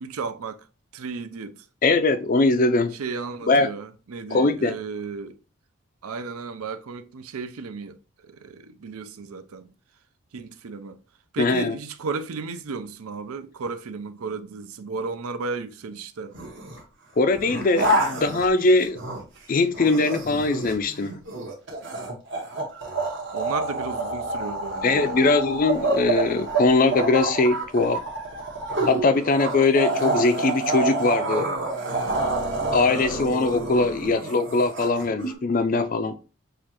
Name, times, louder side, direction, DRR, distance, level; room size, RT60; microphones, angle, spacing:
voice 1, 0.0-0.7 0.9-1.7 2.9-5.4 6.0-9.7 10.3-11.0 11.3-16.3 23.3-25.3 29.1-29.2 30.4-30.5 33.9-34.3, right 4 dB, 80° right, 0.5 m, -34 dB
voice 2, 1.8-3.0 3.5-3.7 4.3-4.7 11.4-11.8 17.2-19.0 19.5-21.2 24.8-28.0 28.8-31.5 32.7-36.2, left 3 dB, 40° left, 0.3 m, -21 dB
sound 1, 16.3-16.8 17.3-19.4 19.7-35.3, right 2 dB, 55° right, 1.2 m, -28 dB
6.4 x 2.5 x 2.9 m
head